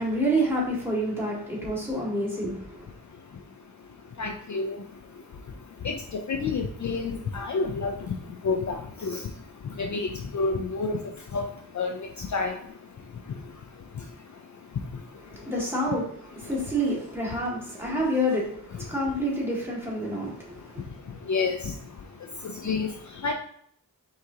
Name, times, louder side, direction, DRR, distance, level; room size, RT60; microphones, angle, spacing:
voice 1, 0.0-2.9 15.3-20.8, equal, 5° right, -5 dB, 1.9 m, -28 dB
voice 2, 4.2-4.8 5.8-6.0 6.3-7.9 8.4-9.2 9.8-10.1 10.3-11.0 11.3-11.4 11.7-11.9 12.3-12.5 21.3-21.7 22.6-22.9 23.2-23.3, left 4 dB, 50° left, 3 dB, 0.5 m, -28 dB
4.7 x 3.7 x 2.8 m, 0.64 s
wide cardioid pair, 80°, 37 cm